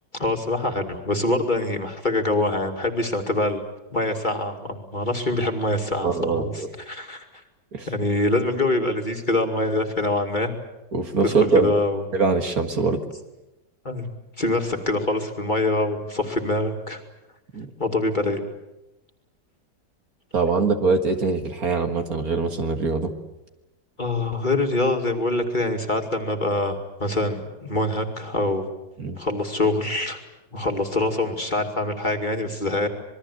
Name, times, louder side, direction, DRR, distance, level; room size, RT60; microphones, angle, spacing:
voice 1, 0.1-3.6 3.9-7.3 7.9-10.5 11.2-12.0 13.8-14.1 14.4-17.0 17.8-18.4 24.0-28.7 29.2-30.2 30.5-32.9, left 2 dB, 25° left, 3 dB, 2.4 m, -24 dB
voice 2, 6.0-6.7 7.7-7.9 10.9-11.8 12.1-13.0 17.5-17.7 20.3-23.1 29.0-29.2, right 4 dB, 55° right, 5 dB, 2.2 m, -23 dB
26.5 x 21.5 x 8.2 m, 0.96 s
omnidirectional pair, 1.9 m